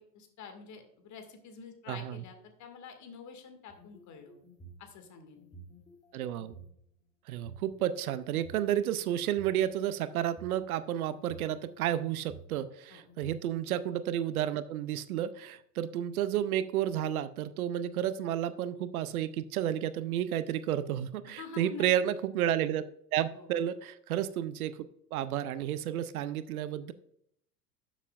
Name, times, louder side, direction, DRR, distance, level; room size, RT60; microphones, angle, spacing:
voice 1, 0.0-4.4 4.8-5.6 12.9-13.0 21.3-21.9 23.3-23.5, left 6 dB, 35° left, 6 dB, 2.0 m, -48 dB
sound 1, 3.7-4.8 5.4-6.7 7.3-8.6 9.2-10.6 11.1-12.5 13.1-13.7, right 4 dB, 15° left, 2.0 m, -52 dB
voice 2, 6.1-6.5 7.3-22.8 23.1-24.8 25.1-26.9, right 11 dB, 65° right, 14 dB, 0.7 m, -31 dB
12.5 x 7.2 x 2.4 m, 0.71 s
figure-of-eight pair, 85°, 46 cm